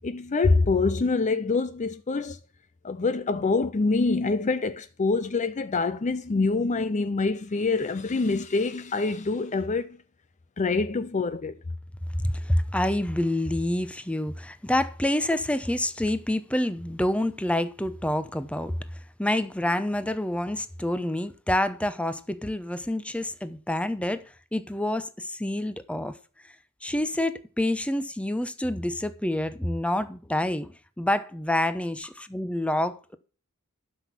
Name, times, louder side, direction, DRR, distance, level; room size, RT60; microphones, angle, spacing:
voice 1, 0.0-2.4 2.8-10.0 10.6-11.6, left 3 dB, 35° left, 0.5 m, -25 dB
voice 2, 12.2-18.8 19.2-24.2 24.5-26.2 26.8-33.2, left 1 dB, 5° left, 0.8 m, -27 dB
12.0 x 6.1 x 6.0 m
head